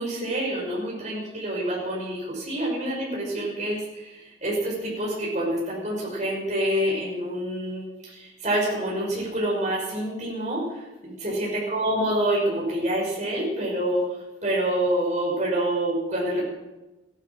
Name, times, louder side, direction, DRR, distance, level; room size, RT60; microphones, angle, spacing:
voice 1, 0.0-14.2 14.4-16.4, right 1 dB, 40° right, -3 dB, 5.6 m, -27 dB
15.5 x 12.0 x 6.0 m, 1.1 s
head